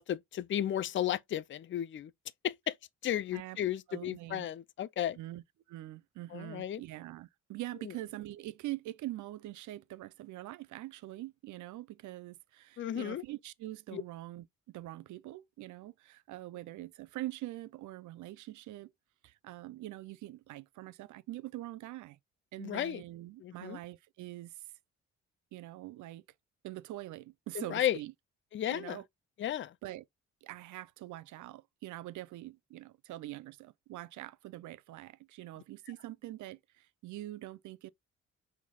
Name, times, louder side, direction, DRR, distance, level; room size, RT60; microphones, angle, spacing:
voice 1, 0.0-2.1 2.4-2.8 3.0-5.2 6.3-6.8 7.8-7.9 12.8-13.2 13.9-14.0 22.6-23.0 23.4-23.8 27.5-28.0 28.5-29.0 29.4-29.7, left 11 dB, 40° left, 0.5 m, -34 dB
voice 2, 3.9-4.5 5.2-5.4 5.7-18.9 19.2-22.2 22.5-24.7 25.5-26.2 26.6-28.1 28.7-29.1 29.8-30.0 30.4-37.9, right 16 dB, 75° right, 0.6 m, -44 dB
6.2 x 3.6 x 2.3 m
cardioid pair, 90°, 30 cm